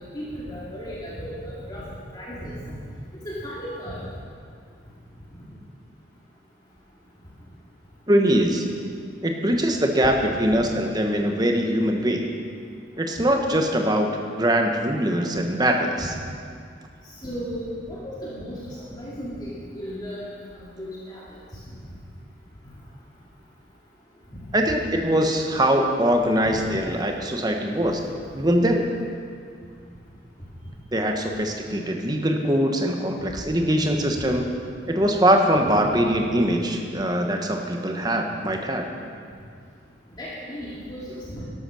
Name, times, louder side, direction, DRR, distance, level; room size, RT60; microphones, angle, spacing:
voice 1, 0.1-1.8 2.1-2.8 3.2-4.0 10.5-10.6 16.0-16.1 17.2-21.2 24.3-24.4 26.5-26.7 34.1-34.2 35.7-35.8 36.1-36.2 40.2-41.4, equal, 25° left, -8 dB, 2.3 m, -35 dB
voice 2, 8.1-8.6 9.2-12.3 13.0-16.1 24.5-28.0 28.3-28.9 30.9-34.5 34.9-38.9, equal, 20° right, 3 dB, 1.2 m, -22 dB
12.5 x 11.5 x 6.3 m, 2.3 s
head